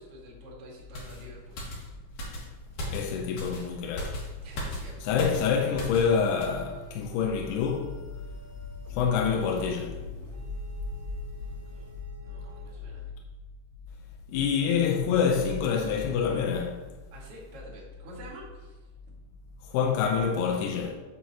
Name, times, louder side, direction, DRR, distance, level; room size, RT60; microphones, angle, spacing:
voice 1, 0.0-1.6 4.4-5.7 11.4-11.9 12.2-13.1 17.1-18.9, right 1 dB, 50° right, 2.0 m, -49 dB
sound 1, 0.9-6.1 6.4-6.6, equal, 60° left, 2.9 m, -37 dB
voice 2, 2.9-4.2 5.0-8.0 8.9-10.0 14.3-16.8 19.7-20.9, left 6 dB, 85° left, 2.7 m, -26 dB
sound 2, 5.8-13.3, right 1 dB, 35° right, 1.6 m, -49 dB
7.6 x 7.1 x 2.8 m
omnidirectional pair, 4.6 m